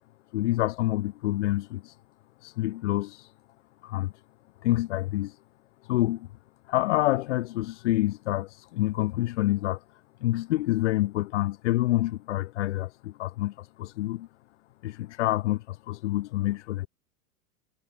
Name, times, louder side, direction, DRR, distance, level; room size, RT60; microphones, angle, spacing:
voice 1, 0.3-2.0 2.4-3.3 3.8-4.1 4.6-5.4 5.8-6.3 6.7-9.8 10.2-14.3 14.8-16.9, left 16 dB, 50° left, 1.0 m, -27 dB
figure-of-eight pair, 90°, 44 cm